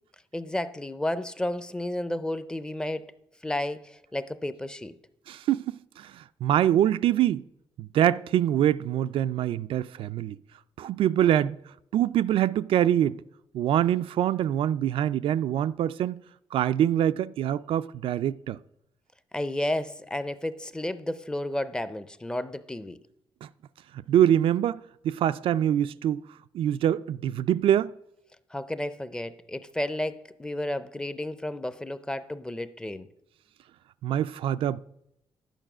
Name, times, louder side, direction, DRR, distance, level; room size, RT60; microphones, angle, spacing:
voice 1, 0.3-3.1 3.4-5.0 19.3-23.0 28.5-33.1, left 1 dB, 10° left, 0.5 m, -32 dB
voice 2, 5.3-7.4 7.8-10.4 10.8-11.6 11.9-13.2 13.5-16.2 16.5-18.6 23.4-23.5 24.1-26.2 26.5-27.9 34.0-34.8, right 11 dB, 75° right, 0.4 m, -24 dB
12.0 x 9.1 x 6.0 m
wide cardioid pair, 165°, 9 cm